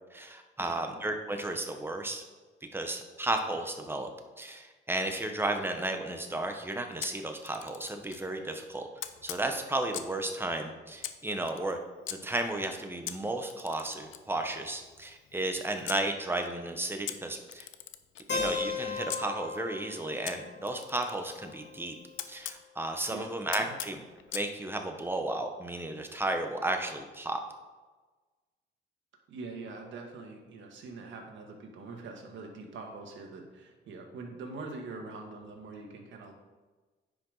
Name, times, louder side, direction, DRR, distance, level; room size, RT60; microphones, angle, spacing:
voice 1, 0.1-2.2 2.7-4.1 4.4-8.9 9.2-11.8 12.2-17.7 18.3-21.9 22.3-24.0 24.3-27.4, right 2 dB, 10° right, 4 dB, 1.2 m, -33 dB
Camera, 7.0-8.3 9.0-10.2 11.0-12.2 13.1-16.0 17.1-19.2 20.3-22.6 23.5-24.5, left 11 dB, 80° left, 0.6 m, -42 dB
Keyboard (musical), 18.3-22.2, left 4 dB, 60° left, 2.9 m, -37 dB
voice 2, 29.3-36.3, right 3 dB, 70° right, 2 dB, 1.7 m, -43 dB
9.8 x 5.2 x 4.1 m, 1.3 s
cardioid pair, 90°, 20 cm